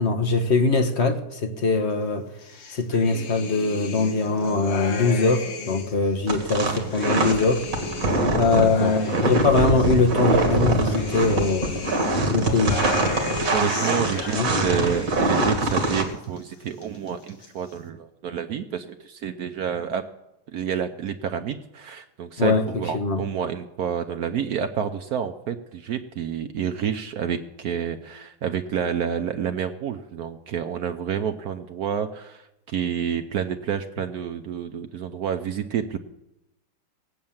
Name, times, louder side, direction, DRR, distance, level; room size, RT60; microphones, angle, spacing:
voice 1, 0.0-2.3 2.7-7.6 8.3-12.0 12.3-12.8 14.3-14.5 22.4-22.6 22.9-23.2, left 3 dB, 45° left, 1.0 m, -22 dB
sound 1, 2.4-6.0 6.5-9.9 10.4-15.3 15.5-16.4 16.7-17.5, left 4 dB, 80° left, 2.6 m, -35 dB
sound 2, 6.3-16.0, right 2 dB, 40° right, 2.3 m, -23 dB
voice 2, 6.6-6.9 8.5-9.0 13.5-20.1 20.5-36.0, right 8 dB, 85° right, 0.8 m, -29 dB
17.5 x 8.6 x 7.2 m
omnidirectional pair, 2.4 m